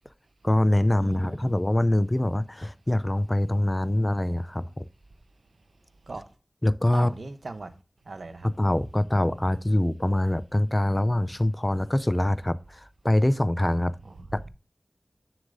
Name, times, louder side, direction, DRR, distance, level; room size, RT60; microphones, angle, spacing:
voice 1, 0.4-4.9 6.6-7.1 8.6-13.9 14.3-14.5, left 1 dB, 20° left, 0.4 m, -24 dB
voice 2, 1.0-1.5 6.1-6.3 6.9-7.7 8.1-8.5 14.0-14.1, right 3 dB, 80° right, 0.8 m, -39 dB
7.3 x 6.4 x 2.6 m
wide cardioid pair, 55°, 0 cm